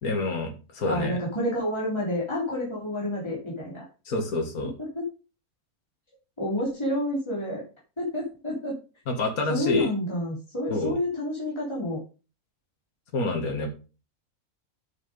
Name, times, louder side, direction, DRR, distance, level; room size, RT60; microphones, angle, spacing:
voice 1, 0.0-1.2 4.1-4.7 9.1-9.9 10.7-11.0 13.1-13.7, left 2 dB, 75° left, 3 dB, 2.1 m, -27 dB
voice 2, 0.8-3.8 5.0-5.1 6.4-7.6 8.0-8.8 9.5-12.0, left 1 dB, 20° left, -5 dB, 3.6 m, -29 dB
8.6 x 6.6 x 5.2 m, 0.32 s
omnidirectional pair, 1.5 m